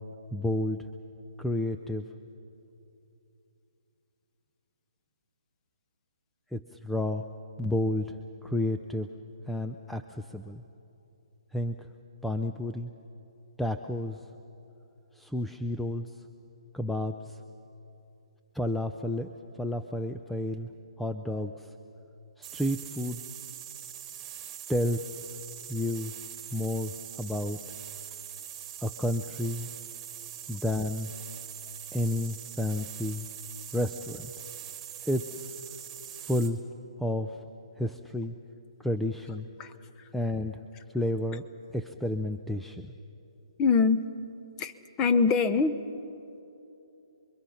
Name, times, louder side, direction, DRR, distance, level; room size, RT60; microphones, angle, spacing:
voice 1, 0.3-0.8 1.4-2.1 6.5-7.2 7.6-8.2 8.4-9.1 9.5-10.6 11.5-11.9 12.2-12.9 13.6-14.2 15.2-16.1 16.7-17.4 18.5-19.3 19.6-20.7 21.0-21.7 22.4-23.2 24.7-25.0 25.7-26.1 26.5-27.6 28.8-29.7 30.5-31.1 31.9-33.3 33.7-34.3 35.1-35.6 36.2-36.6 37.0-37.4 37.8-38.3 38.8-39.5 40.1-40.6 40.9-41.4 41.7-42.9, left 1 dB, ahead, 7 dB, 0.4 m, -31 dB
sound 1, 22.4-36.6, right 10 dB, 15° right, 1.8 m, -43 dB
voice 2, 43.6-44.0 44.6-44.7 45.0-45.8, left 5 dB, 20° left, 13 dB, 0.8 m, -23 dB
28.0 x 23.0 x 5.7 m, 2.8 s
hypercardioid pair, 155°, 3 cm